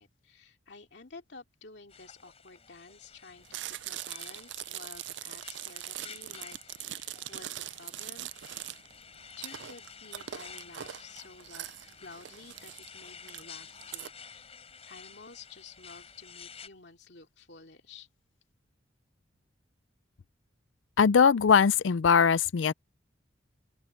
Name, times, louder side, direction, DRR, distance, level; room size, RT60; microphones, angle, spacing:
voice 1, 0.0-8.6 9.4-14.5 14.9-18.1, left 4 dB, 60° left, 2.7 m, -51 dB
sound 1, 1.9-16.7, left 6 dB, 30° left, 6.5 m, -51 dB
Chewing mastication, 3.4-14.1, right 13 dB, 65° right, 0.4 m, -42 dB
voice 2, 21.0-22.7, left 6 dB, 75° left, 0.4 m, -21 dB
open air
head